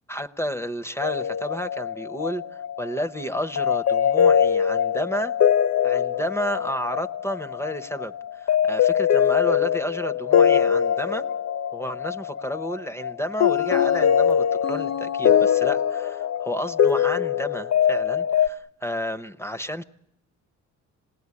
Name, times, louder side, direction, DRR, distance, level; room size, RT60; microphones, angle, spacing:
voice 1, 0.1-5.3 5.8-11.3 11.7-19.8, equal, 10° left, 11 dB, 0.8 m, -31 dB
sound 1, 1.0-18.5, left 8 dB, 55° left, 0.9 m, -22 dB
26.0 x 18.5 x 9.7 m, 0.84 s
cardioid pair, 90°, 30 cm